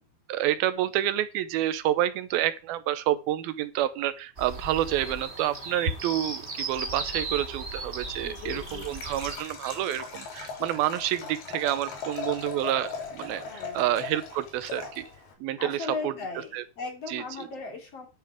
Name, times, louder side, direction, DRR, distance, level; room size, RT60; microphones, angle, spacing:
voice 1, 0.3-15.1 15.4-16.1 16.5-16.6 17.1-17.2, right 13 dB, 80° right, 2.6 m, -28 dB
sound 1, 4.4-9.4, right 2 dB, 25° right, 1.6 m, -35 dB
voice 2, 8.2-9.2 13.4-14.1 15.6-18.1, left 4 dB, 45° left, 3.4 m, -38 dB
Liquid, 8.5-15.3, left 5 dB, 80° left, 5.0 m, -39 dB
9.5 x 9.5 x 5.0 m
omnidirectional pair, 4.4 m